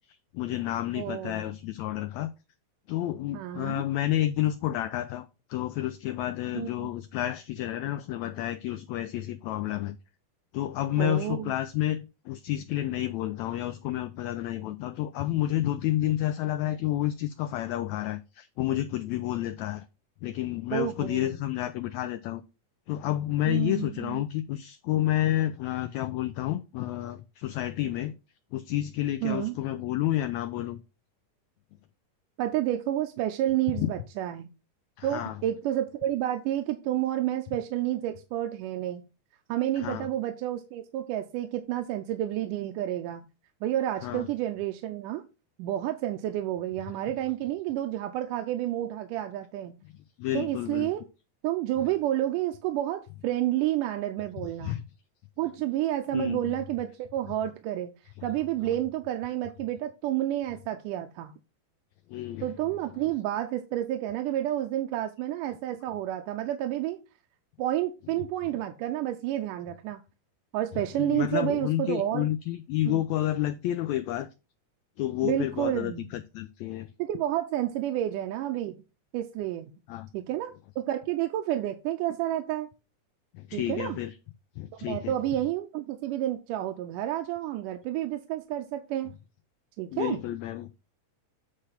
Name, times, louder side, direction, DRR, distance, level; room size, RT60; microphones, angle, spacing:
voice 1, 0.1-2.3 2.9-10.0 10.5-19.8 20.2-22.4 22.9-28.2 28.5-30.8 33.8-33.9 35.0-35.4 39.8-40.1 44.0-44.3 49.9-50.9 54.6-54.8 56.1-56.4 62.1-62.5 71.0-74.3 75.0-76.9 79.9-80.1 83.3-84.1 84.6-85.1 89.9-90.7, left 13 dB, 85° left, 1.6 m, -30 dB
voice 2, 1.0-1.6 3.3-3.8 6.6-6.9 11.0-11.5 20.7-21.4 23.5-24.2 29.2-29.6 32.4-34.5 35.0-39.0 39.5-43.2 43.6-45.2 45.6-49.7 50.3-51.0 51.4-54.8 55.4-57.9 58.2-61.3 62.4-67.0 67.6-70.0 70.5-72.3 72.9-73.0 75.2-76.1 77.0-78.8 79.1-79.7 80.1-80.5 80.8-82.7 83.5-84.0 84.8-89.1 89.8-90.2, right 13 dB, 85° right, 2.2 m, -30 dB
8.7 x 3.3 x 5.8 m
omnidirectional pair, 3.7 m